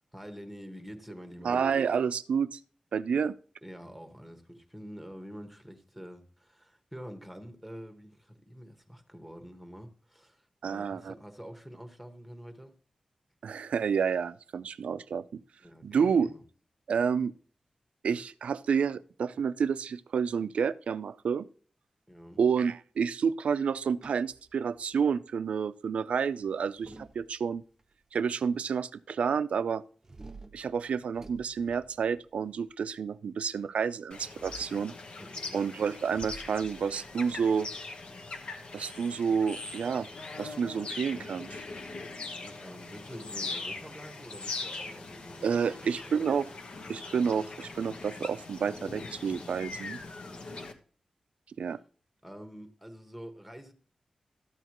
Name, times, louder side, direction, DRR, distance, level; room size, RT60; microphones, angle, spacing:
voice 1, 0.1-1.6 3.1-3.2 3.6-12.8 15.6-16.4 22.1-22.4 35.2-35.6 42.1-46.4 50.3-50.7 51.7-51.8 52.2-53.7, equal, ahead, 1.2 m, -47 dB
voice 2, 1.4-2.6 2.9-3.3 10.6-11.1 13.4-15.4 15.8-16.3 16.9-17.3 18.0-21.4 22.4-27.6 28.1-29.8 30.5-34.9 35.5-37.7 38.7-40.1 40.4-41.5 45.4-46.5 46.9-50.0 51.6-51.8, right 6 dB, 85° right, 0.4 m, -29 dB
sound 1, 23.7-25.1 26.4-27.8 30.0-32.6 34.2-34.9 36.1-38.5, right 3 dB, 25° right, 0.7 m, -51 dB
sound 2, 34.1-50.7, left 3 dB, 55° left, 1.1 m, -41 dB
13.0 x 8.0 x 3.0 m
wide cardioid pair, 160°, 2 cm